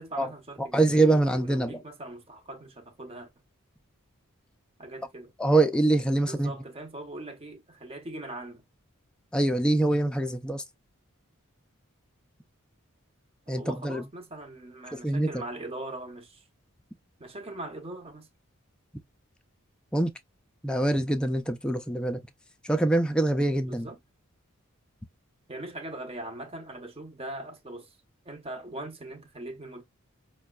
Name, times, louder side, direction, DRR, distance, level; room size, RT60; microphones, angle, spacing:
voice 1, 0.0-3.3 4.8-5.3 6.2-8.6 13.6-16.4 17.2-18.3 23.6-24.0 25.5-28.0 28.2-29.8, right 1 dB, 25° right, 0.8 m, -41 dB
voice 2, 0.7-1.8 5.4-6.5 9.3-10.6 13.5-14.0 14.9-15.4 19.9-20.1 20.6-22.2 22.6-23.9, right 2 dB, 5° left, 0.3 m, -24 dB
5.3 x 2.2 x 2.3 m
head